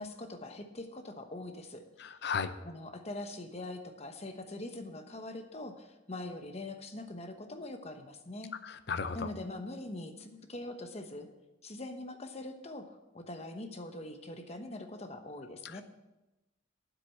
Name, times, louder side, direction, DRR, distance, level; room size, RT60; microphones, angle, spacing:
voice 1, 0.0-1.8 2.6-8.5 9.1-11.3 11.6-15.8, left 2 dB, 30° left, 6 dB, 1.0 m, -43 dB
voice 2, 2.0-2.6 8.6-9.3 15.6-15.8, left 5 dB, 55° left, 11 dB, 0.6 m, -35 dB
9.4 x 7.9 x 7.2 m, 1.0 s
head